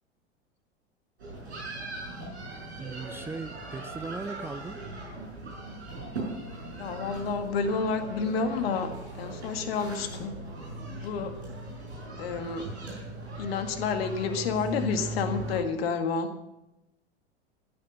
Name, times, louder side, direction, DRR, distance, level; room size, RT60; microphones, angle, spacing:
sound 1, 1.2-15.6, right 2 dB, 75° right, 6.6 m, -39 dB
voice 1, 2.8-4.8, right 4 dB, 5° right, 11 dB, 0.4 m, -38 dB
voice 2, 6.8-8.9 9.2-10.3 10.9-11.4 12.2-12.7 13.4-16.3, left 5 dB, 60° left, 7 dB, 1.9 m, -29 dB
14.5 x 10.5 x 6.6 m, 0.92 s
figure-of-eight pair, 85°, 33 cm